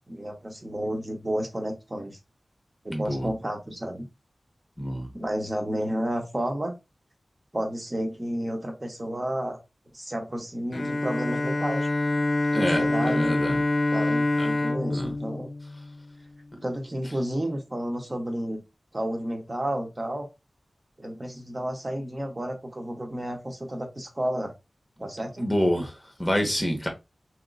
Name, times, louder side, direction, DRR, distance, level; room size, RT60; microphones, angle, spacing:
voice 1, 0.1-2.2 2.8-4.1 5.1-6.7 7.5-9.6 9.9-11.9 12.5-13.4 13.9-15.5 16.6-18.6 18.9-20.3 21.0-24.5 25.0-25.5, right 1 dB, 30° right, 0.9 m, -31 dB
voice 2, 2.9-3.3 4.8-5.1 12.5-13.6 14.4-14.5 14.9-15.1 25.4-25.9 26.2-26.9, equal, 15° left, 0.9 m, -27 dB
Bowed string instrument, 10.7-16.4, left 2 dB, 50° left, 0.4 m, -26 dB
3.0 x 3.0 x 2.6 m
wide cardioid pair, 95°, 0 cm